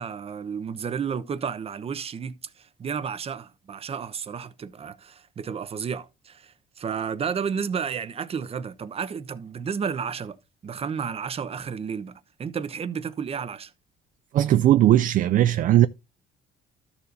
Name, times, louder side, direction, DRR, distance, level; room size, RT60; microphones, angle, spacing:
voice 1, 0.0-10.4 10.6-12.1 12.4-13.7, right 6 dB, 35° right, 0.9 m, -32 dB
voice 2, 14.3-15.9, right 13 dB, 50° right, 0.4 m, -18 dB
13.0 x 7.0 x 2.6 m
cardioid pair, 110°, 17 cm